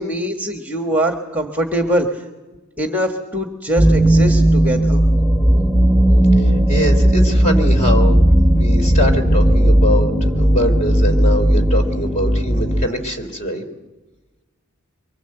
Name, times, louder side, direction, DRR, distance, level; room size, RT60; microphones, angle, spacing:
voice 1, 0.0-2.3 2.8-5.0, right 1 dB, 10° right, 4 dB, 1.4 m, -22 dB
sound 1, 3.8-12.9, right 1 dB, 10° left, 3.2 m, -15 dB
voice 2, 6.4-8.2 8.5-13.6, equal, 35° left, 5 dB, 3.1 m, -23 dB
24.0 x 21.0 x 7.9 m, 1.2 s
head